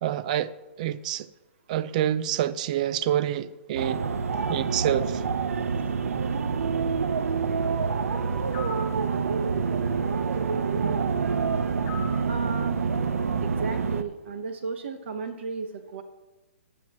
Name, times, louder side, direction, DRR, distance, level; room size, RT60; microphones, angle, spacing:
voice 1, 0.0-0.5 0.8-1.3 1.7-4.1 4.5-5.2, right 11 dB, 30° right, 0.4 m, -27 dB
sound 1, 3.7-14.0, right 5 dB, 80° right, 0.8 m, -27 dB
sound 2, 8.5-8.9 11.9-12.3, left 5 dB, 30° left, 1.0 m, -38 dB
voice 2, 12.3-12.9 13.4-16.0, right 4 dB, 55° right, 1.0 m, -34 dB
15.0 x 10.5 x 3.0 m
hypercardioid pair, 165°, 8 cm